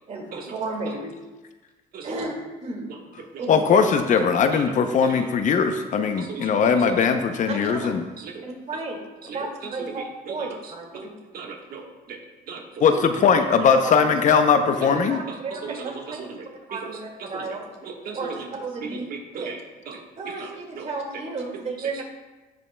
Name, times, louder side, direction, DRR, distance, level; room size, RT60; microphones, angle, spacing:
voice 1, 0.1-1.1 2.0-2.3 2.6-2.9 3.4-3.6 7.5-7.8 8.4-9.0 9.2-11.1 12.8-13.0 13.3-13.5 13.8-13.9 14.7-14.8 15.0-16.3 16.7-17.7 18.1-19.1 19.4-19.6 20.2-22.0, right 3 dB, 40° right, 0 dB, 2.1 m, -33 dB
voice 2, 3.5-8.0 12.8-15.2, left 6 dB, 50° left, 7 dB, 0.6 m, -20 dB
voice 3, 6.2-6.9 8.2-8.5 9.2-9.5 9.8-10.7 11.3-12.2 12.5-12.9 14.9-15.0 15.3-16.9 17.2-17.6 17.8-18.5 18.8-20.9 21.8-21.9, right 5 dB, 60° right, 1 dB, 1.4 m, -38 dB
16.0 x 5.4 x 2.2 m, 1.2 s
cardioid pair, 110°, 17 cm